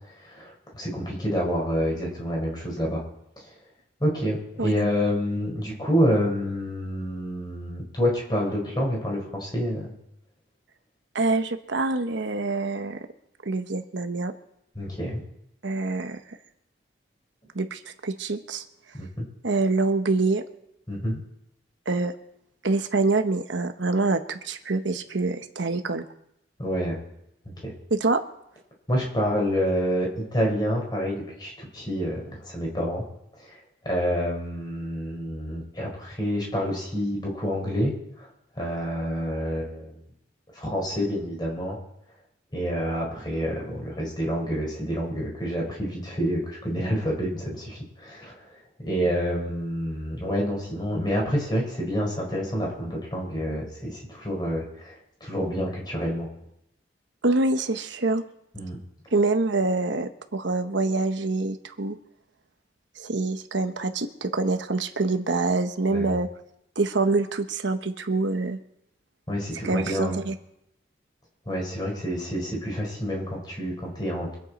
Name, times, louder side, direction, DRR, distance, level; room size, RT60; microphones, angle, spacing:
voice 1, 0.2-3.0 4.0-9.9 14.7-15.2 18.9-19.3 20.9-21.2 26.6-27.0 27.6-27.7 28.9-33.0 33.4-33.6 33.8-37.9 38.6-40.0 40.5-41.8 42.5-48.4 48.8-56.3 58.5-58.8 65.9-66.2 69.3-70.2 71.5-74.3, equal, 20° left, -1 dB, 4.4 m, -28 dB
voice 2, 4.6-4.9 11.1-13.1 13.4-14.3 15.6-16.4 17.5-18.6 19.4-20.4 21.9-22.1 22.6-26.0 27.9-28.2 57.2-58.2 59.1-62.0 63.0-66.3 66.8-68.6 69.6-70.3, right 3 dB, 75° right, 8 dB, 1.0 m, -25 dB
24.5 x 9.0 x 4.2 m, 0.80 s
head